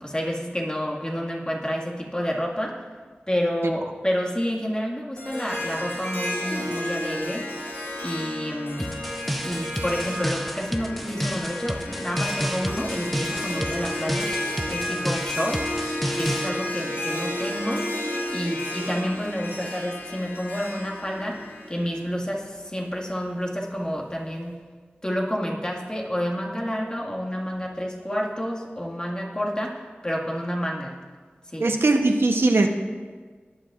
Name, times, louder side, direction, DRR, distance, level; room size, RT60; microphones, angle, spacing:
voice 1, 0.0-2.8 3.3-7.5 8.0-8.9 9.4-14.4 14.7-15.7 16.2-17.9 18.3-24.6 25.0-31.0 31.5-31.7, equal, 20° left, -2 dB, 1.9 m, -29 dB
Harp, 5.2-22.4, left 1 dB, 75° left, 3.2 m, -32 dB
sound 1, 8.8-16.5, equal, ahead, 0.7 m, -31 dB
voice 2, 31.6-32.7, right 2 dB, 80° right, 4 dB, 0.9 m, -20 dB
18.0 x 10.5 x 2.5 m, 1.5 s
wide cardioid pair, 65°, 4 cm